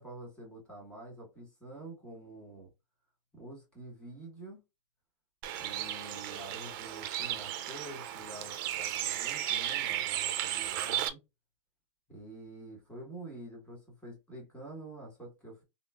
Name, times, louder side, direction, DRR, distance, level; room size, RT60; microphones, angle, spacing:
voice 1, 0.0-2.7 3.3-4.6 5.5-11.2 12.1-15.6, right 1 dB, 5° left, 1.3 m, -47 dB
Bird, 5.4-11.1, right 12 dB, 40° right, 0.4 m, -34 dB
3.7 x 2.0 x 2.3 m
supercardioid pair, 150°, 17 cm